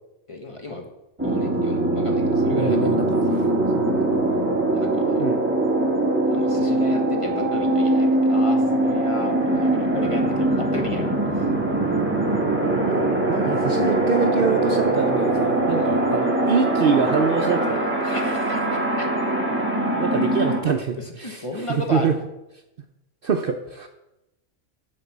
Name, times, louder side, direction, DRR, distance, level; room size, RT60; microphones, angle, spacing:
voice 1, 0.3-0.8 1.2-2.8 4.7-5.2 6.3-11.1 11.4-11.5 15.7-15.9 18.0-19.1 21.0-22.1, left 2 dB, 25° left, 2 dB, 1.2 m, -33 dB
sound 1, 1.2-20.6, right 2 dB, 10° right, 1.4 m, -22 dB
voice 2, 2.5-3.4 3.8-4.4 5.2-5.4 12.7-17.9 20.0-22.2 23.2-23.9, right 6 dB, 55° right, 6 dB, 0.7 m, -25 dB
11.0 x 4.2 x 7.1 m, 0.93 s
omnidirectional pair, 1.3 m